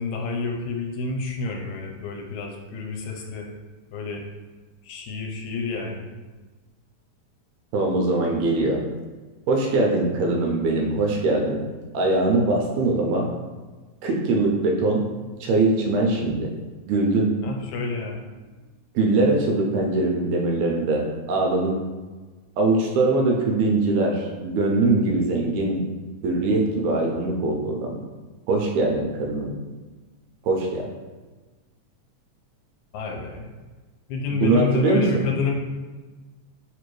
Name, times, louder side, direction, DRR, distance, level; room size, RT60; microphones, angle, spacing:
voice 1, 0.0-3.5 3.9-4.2 4.8-6.1 17.4-18.4 32.9-33.5 34.1-35.5, left 4 dB, 80° left, 1 dB, 1.9 m, -29 dB
voice 2, 7.7-8.8 9.5-11.6 11.9-13.3 14.0-15.0 15.4-16.5 16.9-17.3 19.0-21.8 22.6-25.8 26.2-28.0 28.5-29.6 30.4-30.9 34.3-35.1, right 2 dB, 80° right, 0 dB, 1.7 m, -22 dB
4.4 x 2.5 x 3.0 m, 1.3 s
omnidirectional pair, 3.4 m